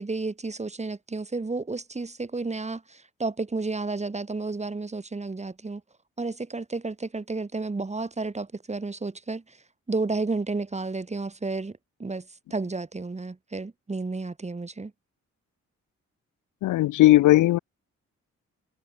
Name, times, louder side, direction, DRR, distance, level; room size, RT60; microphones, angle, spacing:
voice 1, 0.0-5.8 6.2-9.6 9.9-11.7 12.0-12.3 12.5-14.9, right 3 dB, 20° right, 2.2 m, -31 dB
voice 2, 16.6-17.6, left 16 dB, 85° left, 0.7 m, -17 dB
cardioid pair, 75°, 30 cm